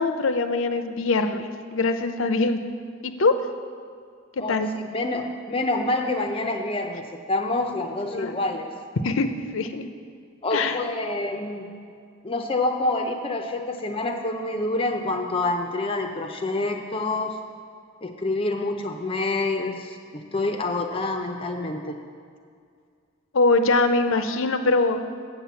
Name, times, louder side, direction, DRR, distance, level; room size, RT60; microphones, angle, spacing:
voice 1, 0.0-2.6 3.0-3.3 4.5-4.7 8.1-8.4 9.0-9.8 10.5-10.8 23.3-25.0, left 3 dB, 70° left, 9 dB, 0.6 m, -23 dB
voice 2, 4.9-8.7 10.4-11.7 12.2-17.4 18.0-22.0, left 2 dB, 25° left, 4 dB, 0.6 m, -27 dB
7.9 x 7.5 x 7.0 m, 2.2 s
head